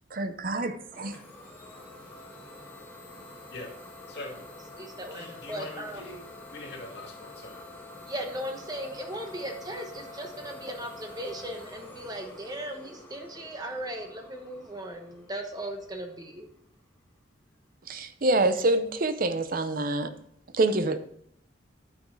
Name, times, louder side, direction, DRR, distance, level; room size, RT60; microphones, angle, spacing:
voice 1, 0.1-1.2 17.9-20.1 20.5-21.0, right 2 dB, 50° right, 11 dB, 0.7 m, -26 dB
Idling / Domestic sounds home sounds, 0.9-16.5, left 2 dB, 10° left, 1.5 m, -47 dB
voice 2, 4.1-4.4 5.1-7.6, left 2 dB, 60° left, 0 dB, 2.2 m, -43 dB
voice 3, 4.8-6.2 8.0-16.5, right 1 dB, 20° right, 4 dB, 1.0 m, -37 dB
9.2 x 6.2 x 3.9 m, 0.73 s
head